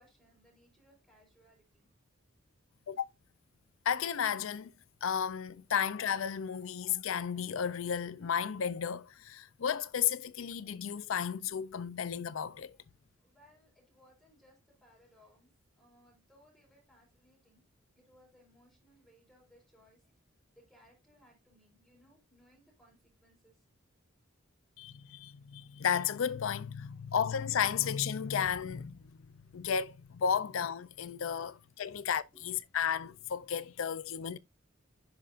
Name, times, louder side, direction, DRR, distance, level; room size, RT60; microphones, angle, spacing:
voice 1, 0.0-1.9 12.7-12.9 13.2-17.6 17.9-20.1 20.5-23.6 25.1-25.2 31.9-32.0 32.3-32.4, equal, 5° left, 4.2 m, -64 dB
voice 2, 3.9-4.7 5.0-12.7 24.8-29.0 29.5-34.4, left 8 dB, 75° left, 0.5 m, -33 dB
10.5 x 5.6 x 2.5 m
head